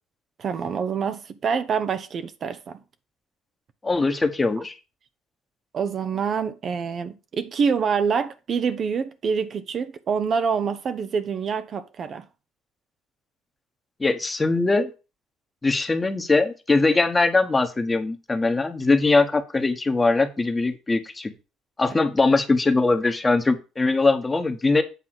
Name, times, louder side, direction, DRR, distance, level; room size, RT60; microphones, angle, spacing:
voice 1, 0.4-2.8 5.7-12.2 21.9-22.0, right 6 dB, 50° right, 0.8 m, -26 dB
voice 2, 3.8-4.7 14.0-14.9 15.6-21.3 21.8-24.8, left 3 dB, 25° left, 1.3 m, -21 dB
8.3 x 3.6 x 6.2 m
hypercardioid pair, 65°, 0 cm